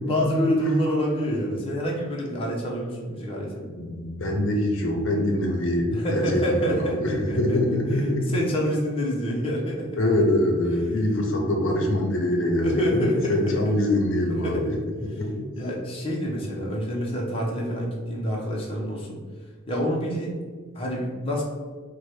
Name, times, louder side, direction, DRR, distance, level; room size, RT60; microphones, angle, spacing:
voice 1, 0.1-3.7 5.9-7.6 8.3-10.0 12.6-13.8 14.3-14.8 15.6-19.2 19.7-20.4 20.7-21.4, equal, 25° left, -3 dB, 0.7 m, -27 dB
voice 2, 3.7-8.3 10.0-14.8 15.0-15.5, left 1 dB, 70° left, 1 dB, 0.7 m, -24 dB
4.4 x 2.2 x 4.7 m, 1.5 s
head